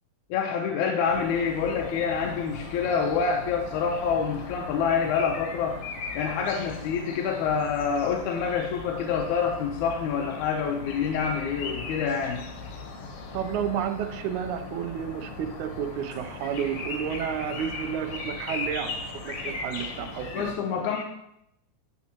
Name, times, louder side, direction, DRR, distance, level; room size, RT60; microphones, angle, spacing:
voice 1, 0.3-5.8 6.2-12.4 20.3-21.0, left 6 dB, 85° left, 1 dB, 2.2 m, -27 dB
sound 1, 1.1-20.5, left 3 dB, 60° left, 1.9 m, -38 dB
voice 2, 13.3-20.5, right 8 dB, 85° right, 8 dB, 2.1 m, -31 dB
10.0 x 7.2 x 2.9 m, 0.77 s
omnidirectional pair, 3.4 m